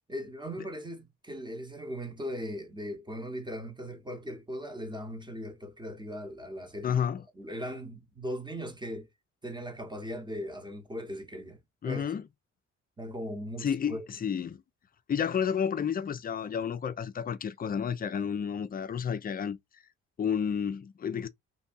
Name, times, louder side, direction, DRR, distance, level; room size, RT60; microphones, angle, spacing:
voice 1, 0.1-7.0 7.3-9.1 9.4-12.1 13.0-14.0, equal, 15° right, 0.9 m, -39 dB
voice 2, 6.8-7.2 11.8-12.2 13.6-14.6 15.1-19.6 20.2-21.3, left 7 dB, 30° left, 0.4 m, -31 dB
2.6 x 2.6 x 2.5 m
cardioid pair, 90°, 30 cm